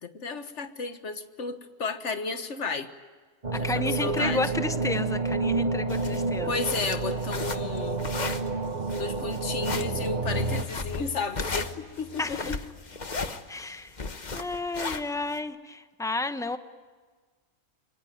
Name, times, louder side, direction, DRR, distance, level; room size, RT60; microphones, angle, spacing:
voice 1, 0.0-2.9 3.6-4.4 6.5-8.0 9.0-12.6, left 4 dB, 80° left, 9 dB, 1.8 m, -33 dB
sound 1, 3.4-10.6, right 3 dB, 40° right, 1.3 m, -29 dB
voice 2, 3.5-6.5 12.2-12.5 13.5-13.9 14.3-16.6, left 2 dB, 5° left, 9 dB, 0.9 m, -31 dB
sound 2, 5.9-15.4, left 4 dB, 40° left, 1.3 m, -35 dB
sound 3, 9.5-12.9, left 6 dB, 60° right, 2.5 m, -40 dB
26.5 x 23.5 x 9.3 m, 1.4 s
omnidirectional pair, 1.2 m